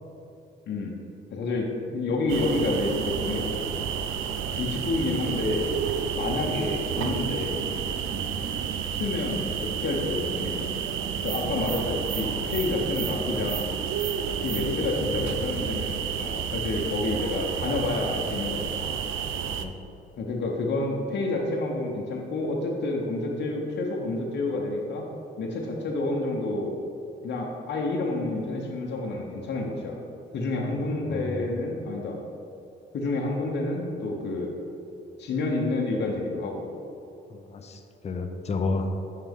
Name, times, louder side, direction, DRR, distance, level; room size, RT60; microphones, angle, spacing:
voice 1, 0.7-1.0 1.3-3.7 4.5-5.7 6.2-7.6 8.9-10.8 11.2-13.7 14.4-19.0 20.2-25.0 25.4-26.7 27.2-30.0 30.3-32.2 32.9-34.5 35.2-36.7, left 2 dB, 60° left, -1 dB, 0.9 m, -29 dB
sound 1, 2.3-19.6, right 7 dB, 80° right, 0.4 m, -30 dB
voice 2, 14.6-15.2 19.6-19.7 30.7-31.5 37.3-38.9, left 3 dB, 35° left, 5 dB, 0.6 m, -33 dB
5.8 x 5.5 x 3.6 m, 2.7 s
cardioid pair, 90°, 20 cm